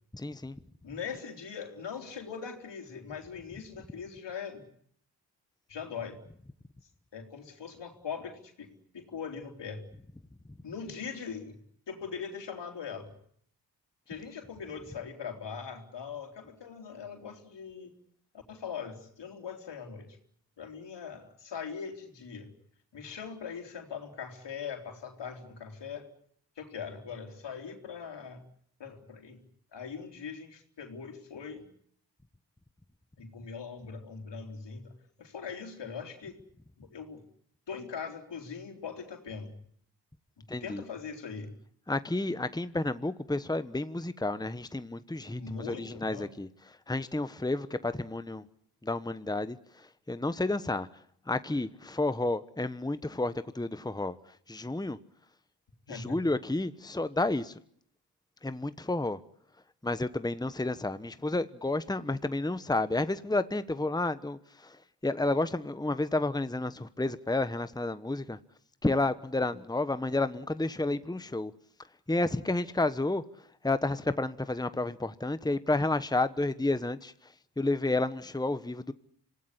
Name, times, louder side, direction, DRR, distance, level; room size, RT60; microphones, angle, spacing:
voice 1, 0.1-0.6 40.5-40.8 41.9-46.5 46.9-48.4 48.8-50.9 51.3-54.2 54.5-55.0 55.9-57.6 58.4-59.2 59.8-68.4 68.8-71.5 72.1-73.2 73.6-78.9, left 2 dB, 10° left, 1.2 m, -31 dB
voice 2, 0.8-4.7 5.7-6.2 7.1-9.8 10.6-11.6 11.9-13.1 14.1-18.0 18.5-20.2 20.6-22.5 22.9-26.1 26.6-28.4 28.8-29.4 29.7-31.7 33.2-36.4 36.8-37.2 37.7-39.5 40.6-41.5 45.3-46.3 55.9-56.2, left 6 dB, 80° left, 4.0 m, -41 dB
26.5 x 17.5 x 9.9 m
cardioid pair, 50°, 42 cm